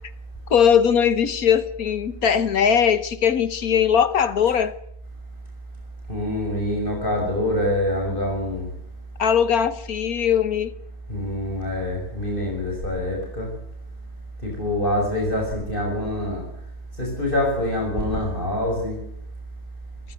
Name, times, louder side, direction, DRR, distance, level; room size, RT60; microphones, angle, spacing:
voice 1, 0.5-4.7 9.2-10.7, left 8 dB, 55° left, 1.4 m, -20 dB
voice 2, 6.1-8.7 11.1-13.5 14.4-16.4 17.0-19.0, left 1 dB, 25° left, 6.0 m, -25 dB
22.0 x 15.5 x 8.0 m
omnidirectional pair, 2.0 m